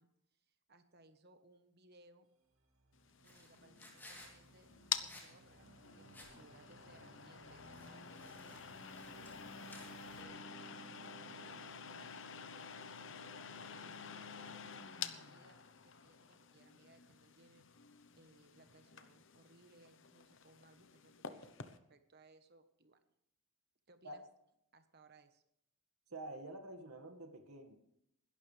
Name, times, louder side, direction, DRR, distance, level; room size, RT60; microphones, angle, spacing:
voice 1, 0.0-2.3 3.2-10.8 11.3-14.6 15.1-17.7 18.1-23.0 23.9-24.2 24.7-25.4, right 2 dB, 45° right, 8 dB, 1.2 m, -66 dB
sound 1, 2.4-10.2, right 2 dB, 70° right, 2.1 m, -63 dB
sound 2, 3.1-21.8, left 7 dB, 55° left, 0.9 m, -49 dB
sound 3, 3.2-4.4 5.1-5.3 5.6-5.7 6.1-6.6 7.5-10.3, left 1 dB, 10° left, 3.2 m, -58 dB
voice 2, 26.1-27.7, right 2 dB, 85° right, 6 dB, 2.0 m, -48 dB
21.0 x 12.0 x 3.4 m, 0.79 s
head